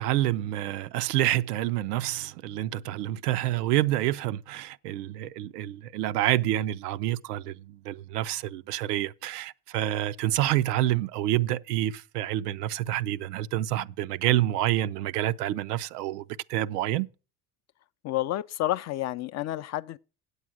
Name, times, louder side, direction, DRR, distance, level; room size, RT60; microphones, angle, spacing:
voice 1, 0.0-16.2 16.5-17.1, right 14 dB, 85° right, 0.6 m, -28 dB
voice 2, 18.0-20.0, left 14 dB, 40° left, 0.4 m, -30 dB
8.4 x 8.1 x 6.1 m
hypercardioid pair, 80°, 46 cm